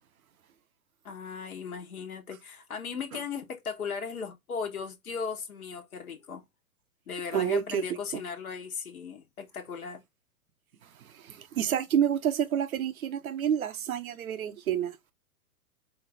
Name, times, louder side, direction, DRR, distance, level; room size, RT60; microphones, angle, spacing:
voice 1, 1.0-6.4 7.1-10.0, left 6 dB, 70° left, 1.2 m, -37 dB
voice 2, 7.3-8.2 11.0-15.0, right 9 dB, 70° right, 0.8 m, -29 dB
4.9 x 2.4 x 3.4 m
figure-of-eight pair, 105°, 45 cm